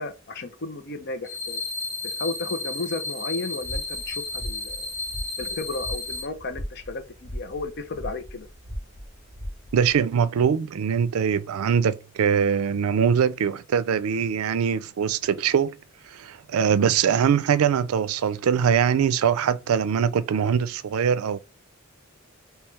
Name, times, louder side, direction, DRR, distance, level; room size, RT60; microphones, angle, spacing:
voice 1, 0.0-1.6 2.0-4.9 5.4-8.5, left 3 dB, 55° left, 0.7 m, -33 dB
sound 1, 1.2-6.2, left 3 dB, 15° left, 1.8 m, -33 dB
sound 2, 3.6-10.0, equal, 10° right, 1.4 m, -38 dB
voice 2, 9.7-15.8 16.1-21.4, right 7 dB, 85° right, 0.4 m, -22 dB
3.1 x 3.0 x 3.4 m
head